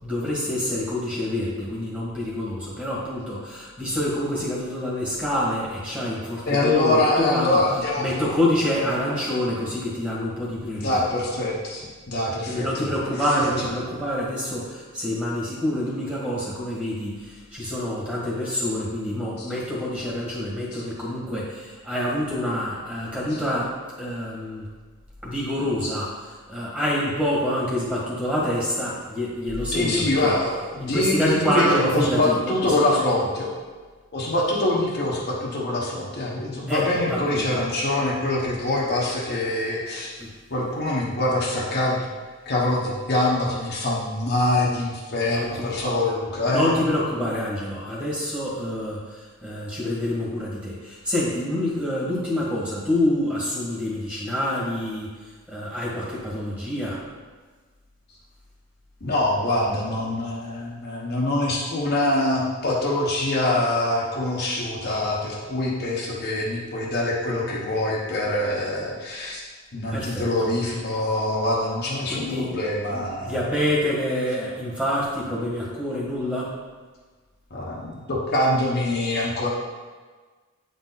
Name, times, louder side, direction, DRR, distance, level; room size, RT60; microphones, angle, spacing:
voice 1, 0.0-7.6 8.0-11.1 12.5-24.7 25.2-26.2 26.5-30.3 30.8-33.0 36.7-37.4 40.2-40.3 45.3-45.7 46.5-55.1 55.5-57.0 69.9-70.5 72.1-72.5 72.9-76.5, left 1 dB, 5° right, -6 dB, 1.8 m, -27 dB
voice 2, 6.5-8.2 10.8-12.9 13.3-13.4 19.4-19.5 20.7-20.8 23.3-23.4 25.8-25.9 29.7-33.5 34.1-40.1 40.5-42.1 42.5-46.7 59.0-69.4 69.7-73.3 77.5-79.5, left 1 dB, 50° left, -5 dB, 1.1 m, -24 dB
8.7 x 4.1 x 4.0 m, 1.4 s
head